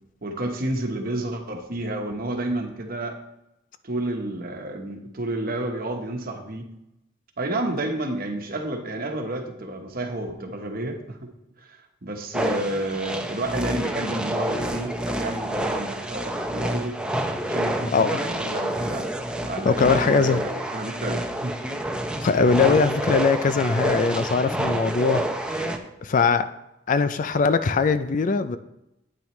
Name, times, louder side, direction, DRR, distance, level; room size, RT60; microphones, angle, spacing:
voice 1, 0.2-3.2 3.8-6.7 7.4-11.3 11.6-17.0 17.4-19.1 19.5-21.6, right 1 dB, 50° right, 4 dB, 1.1 m, -30 dB
sound 1, 12.3-25.8, right 1 dB, 5° right, 0.6 m, -28 dB
voice 2, 19.6-20.4 22.2-25.7 26.0-26.5 26.9-28.6, left 4 dB, 45° left, 11 dB, 0.4 m, -21 dB
9.0 x 8.8 x 3.2 m, 0.87 s
head